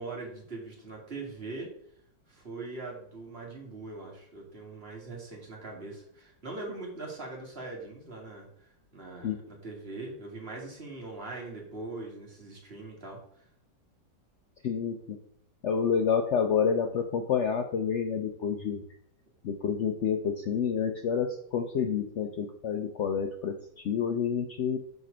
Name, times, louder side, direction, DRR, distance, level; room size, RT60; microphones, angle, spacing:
voice 1, 0.0-1.7 2.3-8.5 8.9-13.4, right 3 dB, 35° right, -1 dB, 2.0 m, -41 dB
voice 2, 14.6-15.2 15.6-18.8 19.4-24.8, left 7 dB, 85° left, 5 dB, 0.6 m, -29 dB
6.7 x 4.4 x 5.0 m, 0.66 s
omnidirectional pair, 1.9 m